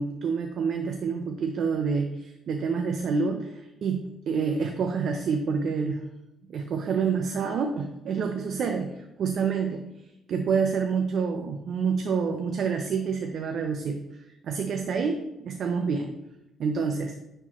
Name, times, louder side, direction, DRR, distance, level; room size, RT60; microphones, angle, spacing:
voice 1, 0.0-6.0 6.5-9.8 10.3-14.0 14.4-16.1 16.6-17.2, right 5 dB, 65° right, 4 dB, 0.6 m, -28 dB
10.0 x 4.5 x 3.0 m, 0.91 s
cardioid pair, 90°, 0 cm